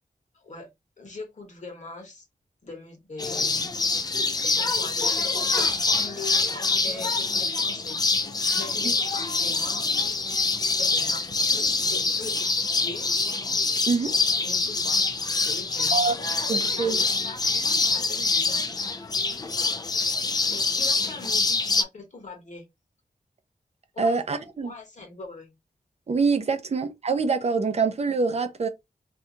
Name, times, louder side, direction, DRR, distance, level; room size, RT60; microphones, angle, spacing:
voice 1, 0.3-0.7 1.0-2.3 2.6-3.7 4.0-8.0 8.3-9.9 10.7-13.1 14.4-15.1 15.4-19.1 20.5-22.6 23.9-24.2 24.6-25.5, left 2 dB, 55° left, 1.2 m, -42 dB
sound 1, 3.2-21.8, left 3 dB, 25° left, 0.3 m, -25 dB
sound 2, 5.6-8.3 8.8-9.0 9.4-9.5 9.8-9.9 10.2-10.3, right 3 dB, 75° right, 0.9 m, -47 dB
voice 2, 16.5-17.0 24.0-24.7 26.1-28.7, right 4 dB, 45° right, 0.5 m, -25 dB
2.7 x 2.3 x 3.7 m
wide cardioid pair, 135°, 15 cm